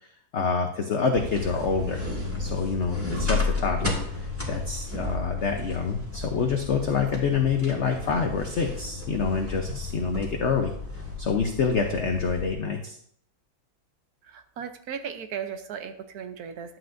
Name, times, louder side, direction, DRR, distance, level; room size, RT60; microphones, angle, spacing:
voice 1, 0.3-2.0 2.4-4.0 4.5-10.7 11.2-13.0, left 5 dB, 65° left, 4 dB, 0.7 m, -26 dB
sound 1, 1.1-12.5, left 3 dB, 5° right, 1.6 m, -33 dB
voice 2, 14.2-16.8, right 7 dB, 65° right, 8 dB, 1.0 m, -36 dB
11.5 x 7.7 x 2.6 m, 0.67 s
omnidirectional pair, 2.1 m